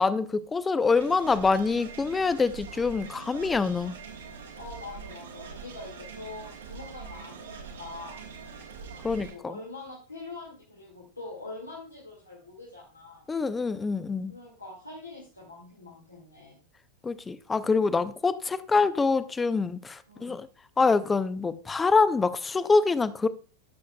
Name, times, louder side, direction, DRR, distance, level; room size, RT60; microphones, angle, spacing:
voice 1, 0.0-4.0 9.0-9.5 13.3-14.3 17.0-20.5 20.8-23.3, left 4 dB, 15° left, 0.5 m, -25 dB
sound 1, 1.0-9.4, right 5 dB, 70° right, 1.5 m, -43 dB
voice 2, 4.6-8.2 9.0-13.3 14.3-16.6 20.1-20.4, left 3 dB, 85° left, 2.1 m, -44 dB
14.5 x 6.4 x 2.3 m
figure-of-eight pair, 90°, 0 cm